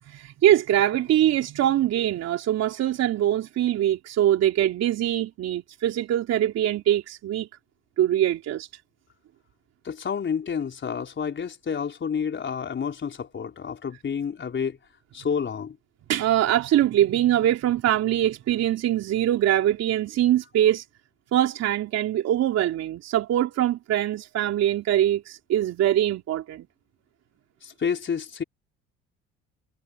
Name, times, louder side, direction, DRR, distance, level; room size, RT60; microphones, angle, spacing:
voice 1, 0.1-7.5 8.0-8.7 16.1-20.8 21.3-26.7, right 12 dB, 60° right, 3.2 m, -23 dB
voice 2, 9.8-14.8 15.1-15.8 27.6-28.4, left 6 dB, 40° left, 4.4 m, -29 dB
hypercardioid pair, 65°, 29 cm